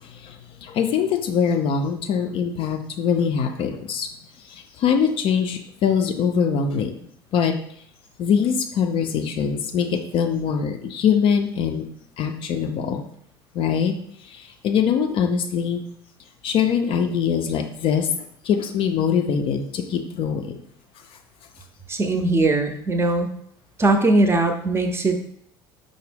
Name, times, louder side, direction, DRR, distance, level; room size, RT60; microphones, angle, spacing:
voice 1, 0.0-4.1 4.4-7.0 7.3-7.6 8.2-11.9 12.2-13.0 13.5-13.9 14.2-15.8 16.4-18.1 18.4-20.6, left 7 dB, 45° left, 5 dB, 0.4 m, -23 dB
voice 2, 21.9-23.3 23.8-25.2, right 2 dB, 20° right, 5 dB, 0.5 m, -20 dB
4.9 x 2.0 x 3.4 m, 0.65 s
figure-of-eight pair, 65°, 13 cm